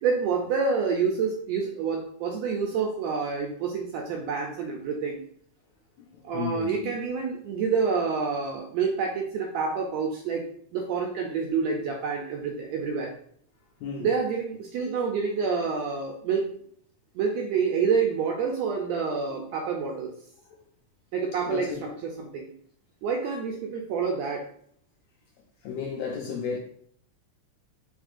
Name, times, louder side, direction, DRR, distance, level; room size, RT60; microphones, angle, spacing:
voice 1, 0.0-5.2 6.2-10.5 10.7-13.1 14.0-16.5 17.1-20.1 21.1-22.5 23.0-24.4, right 5 dB, 80° right, 1.5 m, -28 dB
voice 2, 6.3-6.9 13.8-14.1 19.3-19.4 21.5-21.8 25.6-26.6, left 6 dB, 80° left, 1.6 m, -33 dB
4.3 x 3.4 x 2.5 m
omnidirectional pair, 3.5 m